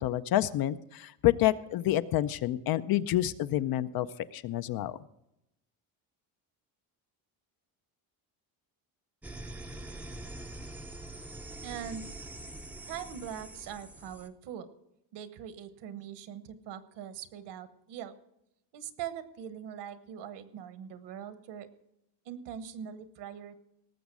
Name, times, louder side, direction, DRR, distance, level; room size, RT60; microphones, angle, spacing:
voice 1, 0.0-4.1 4.3-5.0, left 14 dB, 55° left, 14 dB, 0.6 m, -28 dB
sound 1, 9.2-14.3, right 1 dB, 5° right, 0.5 m, -44 dB
voice 2, 11.6-12.0 12.9-14.7 15.1-18.1 18.7-21.7 22.2-23.6, right 9 dB, 65° right, 13 dB, 1.2 m, -42 dB
18.5 x 7.2 x 6.1 m, 0.82 s
cardioid pair, 170°, 44 cm